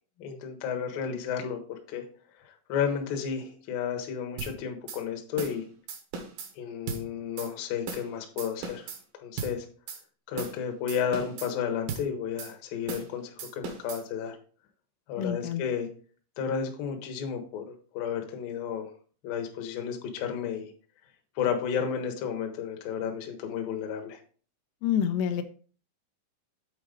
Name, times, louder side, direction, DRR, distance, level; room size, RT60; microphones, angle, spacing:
voice 1, 0.2-1.6 1.9-2.0 2.4-5.6 6.6-8.9 9.2-9.7 10.3-14.4 15.1-15.9 16.4-17.7 17.9-18.9 19.2-20.7 21.4-24.2, left 7 dB, 70° left, 4 dB, 2.2 m, -32 dB
sound 1, 4.4-4.5 4.9-5.0 5.4-5.6 5.9-6.5 6.9-7.0 7.4-7.5 7.9-8.1 8.4-9.0 9.4-9.5 9.9-10.0 10.4-10.6 10.9-11.5 11.9-12.1 12.4-12.5 12.9-13.1 13.4-14.0, right 5 dB, 70° right, 2.3 m, -37 dB
voice 2, 15.2-15.6 24.8-25.4, left 9 dB, 90° left, 7 dB, 2.4 m, -27 dB
7.9 x 4.1 x 5.1 m, 0.42 s
omnidirectional pair, 5.7 m